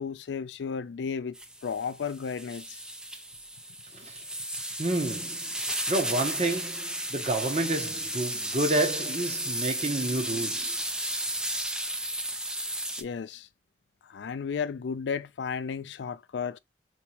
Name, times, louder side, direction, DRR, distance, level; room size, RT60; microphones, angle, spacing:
voice 1, 0.0-1.4 1.6-2.8 13.0-13.5 14.0-16.6, left 6 dB, 85° left, 0.4 m, -33 dB
sound 1, 1.4-13.0, right 1 dB, 5° right, 0.5 m, -34 dB
voice 2, 4.8-5.5 5.9-10.8, right 2 dB, 40° right, 1.1 m, -29 dB
4.5 x 3.0 x 2.9 m
head